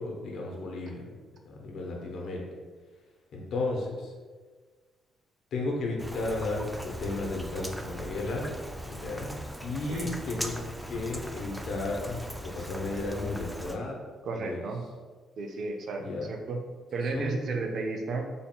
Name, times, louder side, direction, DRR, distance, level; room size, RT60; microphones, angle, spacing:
voice 1, 0.0-2.5 3.3-4.1 5.5-8.5 8.8-10.5 10.9-14.0 14.3-14.6 16.0-16.3 17.1-17.4, left 2 dB, 70° left, -1 dB, 0.8 m, -34 dB
Rain, 6.0-13.8, equal, 5° right, 0.3 m, -39 dB
voice 2, 14.2-14.8 15.4-16.6 16.9-18.2, right 3 dB, 60° right, 3 dB, 0.5 m, -33 dB
4.0 x 3.5 x 2.2 m, 1.5 s
cardioid pair, 90°, 0 cm